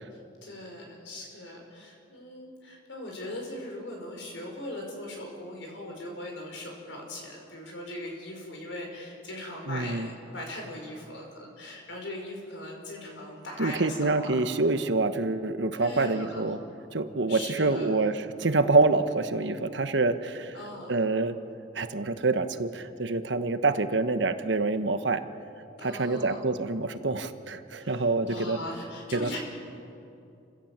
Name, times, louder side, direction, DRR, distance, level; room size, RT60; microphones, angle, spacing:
voice 1, 0.1-14.3 15.7-16.5 17.3-18.0 20.5-21.0 25.8-26.4 27.8-29.4, left 1 dB, 80° left, 1 dB, 5.3 m, -40 dB
voice 2, 9.7-10.1 13.6-16.6 16.9-20.6 20.9-21.3 21.7-25.2 25.8-28.6 29.1-29.4, right 3 dB, 70° right, 10 dB, 1.1 m, -26 dB
28.5 x 16.0 x 7.4 m, 2.7 s
head